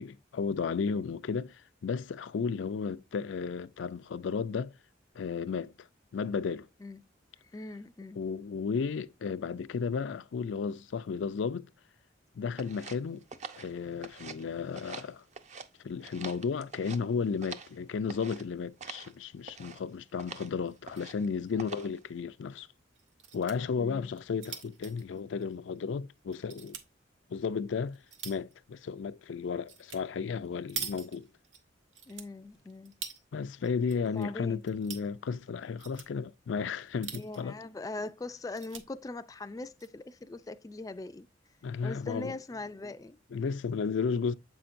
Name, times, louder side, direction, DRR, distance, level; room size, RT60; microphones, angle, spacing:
voice 1, 0.0-4.7 5.2-5.9 6.1-6.7 8.2-11.7 12.3-13.2 13.6-15.2 15.8-22.7 23.3-26.8 27.3-28.0 28.2-31.3 33.3-37.6 41.6-42.3 43.3-44.3, left 5 dB, 90° left, 0.4 m, -33 dB
voice 2, 7.4-8.2 21.5-21.9 23.8-24.1 32.1-33.0 34.0-34.6 37.1-41.3 41.8-43.2, left 2 dB, 20° left, 0.3 m, -41 dB
sound 1, 12.6-14.5 14.7-15.7 16.0-17.8 18.1-18.4 18.8-19.1 19.4-19.8 20.2-20.5 20.8-21.3 21.6-22.0, right 5 dB, 40° right, 0.6 m, -45 dB
sound 2, 20.7-21.1 21.5-21.6 21.8-21.9 22.9-23.6 24.1-25.9 26.3-26.9 27.5-28.5 29.7-30.0 30.3-31.6 31.9-33.2 33.6-34.2 34.5-35.1 35.6-36.1 36.8-37.5 38.0-38.1 38.4-38.8 39.6-39.9, right 7 dB, 85° right, 1.1 m, -43 dB
7.7 x 5.6 x 2.5 m
head